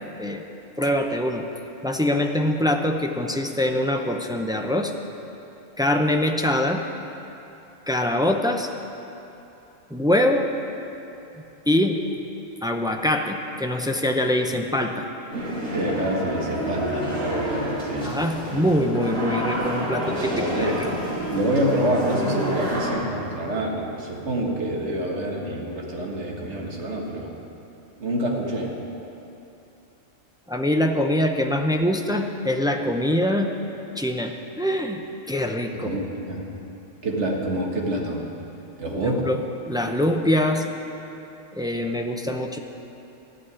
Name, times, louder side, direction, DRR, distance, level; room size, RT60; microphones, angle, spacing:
voice 1, 0.8-1.4 1.8-4.9 5.8-6.8 7.9-8.7 9.9-10.5 11.7-12.0 12.6-15.1 18.0-20.9 30.5-33.5 34.0-35.0 35.3-35.9 39.0-39.4 39.7-40.7 41.6-42.6, left 1 dB, 5° right, 3 dB, 0.4 m, -23 dB
sound 1, 15.3-22.9, equal, 85° right, 3.4 m, -28 dB
voice 2, 15.7-18.2 19.9-20.8 21.3-27.3 28.0-28.7 35.7-36.5 37.0-38.3 38.8-39.3, right 1 dB, 60° right, -1 dB, 2.0 m, -27 dB
14.0 x 6.5 x 9.8 m, 3.0 s
omnidirectional pair, 1.3 m